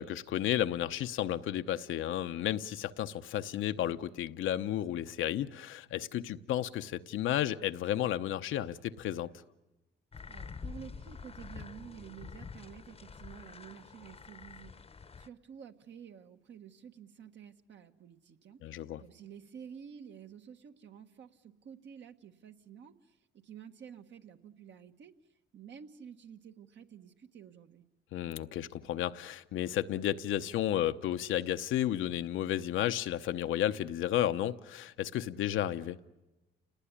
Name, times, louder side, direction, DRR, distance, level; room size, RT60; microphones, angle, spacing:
voice 1, 0.0-9.3 18.6-19.0 28.1-36.0, left 12 dB, 80° left, 0.8 m, -32 dB
sound 1, 10.1-15.3, left 5 dB, 30° left, 0.9 m, -47 dB
voice 2, 10.3-14.8 15.2-25.1 25.5-27.8, right 8 dB, 65° right, 1.6 m, -51 dB
29.5 x 19.0 x 10.0 m
cardioid pair, 90°, 20 cm